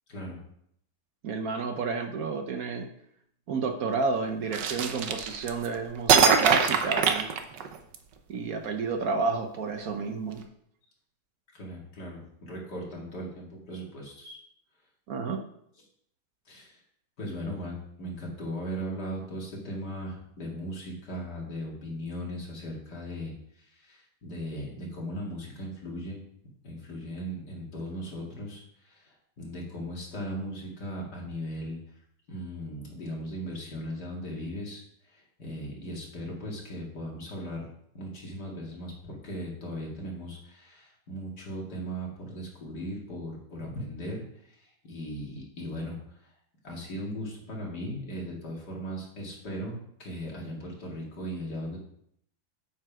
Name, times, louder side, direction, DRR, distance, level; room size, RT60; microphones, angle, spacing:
voice 1, 0.1-0.4 11.5-14.4 16.5-16.8 17.2-26.2 26.6-29.0 29.4-31.8 32.3-34.8 35.1-37.7 37.9-44.2 44.6-46.0 46.6-51.8, equal, 70° left, -2 dB, 3.1 m, -38 dB
voice 2, 1.2-2.9 3.5-7.3 8.3-10.4 15.1-15.4, right 4 dB, 60° right, 6 dB, 1.2 m, -30 dB
sound 1, 4.5-5.7 6.1-8.0, right 6 dB, 90° right, 1.5 m, -22 dB
8.4 x 7.3 x 4.9 m, 0.70 s
omnidirectional pair, 1.8 m